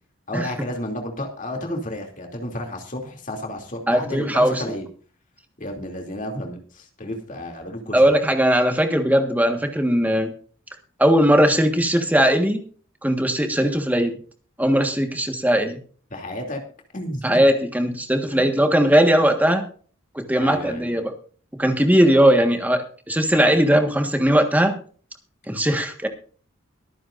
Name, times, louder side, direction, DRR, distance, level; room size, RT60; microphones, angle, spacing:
voice 1, 0.3-4.9 5.6-8.0 16.1-16.6 16.9-17.4 18.3-18.6 20.4-21.0, left 1 dB, 40° left, 2 dB, 2.8 m, -32 dB
voice 2, 3.9-4.6 7.9-10.3 11.0-12.6 13.0-14.1 14.6-15.8 17.2-19.6 20.1-21.1 21.6-24.8 25.5-26.1, equal, 10° right, 5 dB, 1.5 m, -19 dB
23.5 x 9.3 x 2.6 m, 0.43 s
head